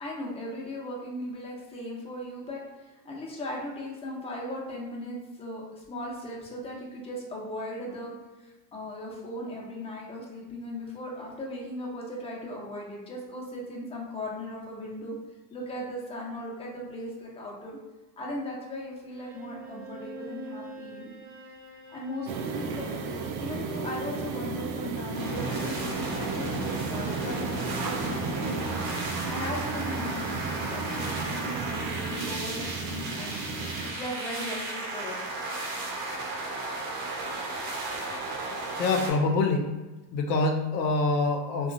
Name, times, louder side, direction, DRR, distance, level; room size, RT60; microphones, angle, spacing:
voice 1, 0.0-8.1 8.4-15.2 15.5-17.8 18.2-21.1 21.9-22.9 23.4-28.8 29.3-33.4 33.9-35.2 37.6-37.7, left 1 dB, 10° left, -3 dB, 0.6 m, -38 dB
Bowed string instrument, 19.1-23.4, right 1 dB, 30° right, 0.7 m, -45 dB
sound 1, 22.3-33.9, right 4 dB, 65° right, 0.6 m, -34 dB
sound 2, 25.1-39.1, right 2 dB, 85° right, 0.9 m, -34 dB
voice 2, 38.8-39.7 40.1-41.7, left 3 dB, 80° left, 4 dB, 0.6 m, -25 dB
2.8 x 2.3 x 2.5 m, 1.2 s
supercardioid pair, 100°, 48 cm